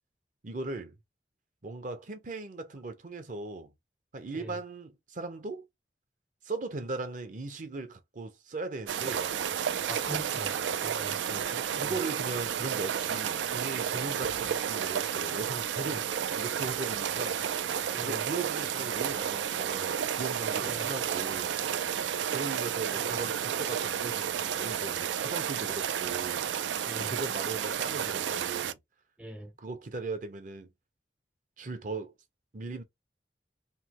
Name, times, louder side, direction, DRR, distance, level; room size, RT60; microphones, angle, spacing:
voice 1, 0.4-0.9 1.6-3.7 4.1-5.7 6.4-9.3 11.3-16.1 16.4-17.4 18.0-21.5 22.3-26.5 27.0-28.8 29.6-30.7 31.6-32.1 32.5-32.8, right 3 dB, 45° right, 0.7 m, -38 dB
sound 1, 8.9-28.7, right 8 dB, 90° right, 0.4 m, -31 dB
voice 2, 9.8-10.5 10.8-11.2 11.7-12.0 15.8-16.0 17.9-18.3 20.6-20.9 22.9-23.3 26.8-27.2 29.2-29.5, equal, 5° right, 0.4 m, -42 dB
3.2 x 2.1 x 2.9 m
head